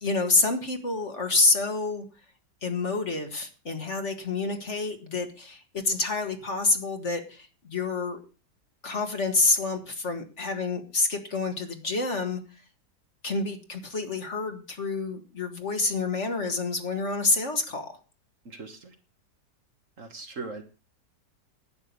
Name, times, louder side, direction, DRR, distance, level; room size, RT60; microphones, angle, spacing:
voice 1, 0.0-2.0 2.6-8.2 8.8-12.4 13.2-18.0, left 3 dB, 45° left, 5 dB, 2.0 m, -28 dB
voice 2, 18.5-19.0 20.0-20.6, right 3 dB, 50° right, 6 dB, 1.9 m, -39 dB
11.5 x 8.9 x 6.7 m, 0.34 s
omnidirectional pair, 1.8 m